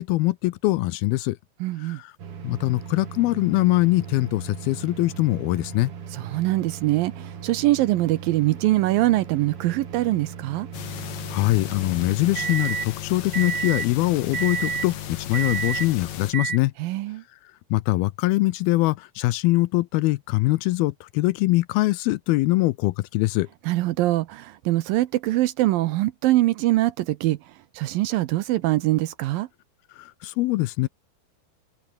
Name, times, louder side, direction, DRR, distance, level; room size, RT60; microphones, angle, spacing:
voice 1, 0.0-1.4 1.8-2.1 2.4-5.9 11.3-16.7 17.7-23.5 30.0-30.9, left 19 dB, 80° left, 2.4 m, -23 dB
voice 2, 1.6-2.0 6.1-10.7 16.8-17.2 23.7-27.4 27.7-29.5, right 16 dB, 75° right, 2.3 m, -23 dB
sound 1, 2.2-12.9 13.3-13.9 14.3-14.9 15.3-15.9 16.3-16.6, right 7 dB, 45° right, 2.4 m, -34 dB
sound 2, 10.7-16.3, left 10 dB, 55° left, 2.5 m, -35 dB
omnidirectional pair, 4.6 m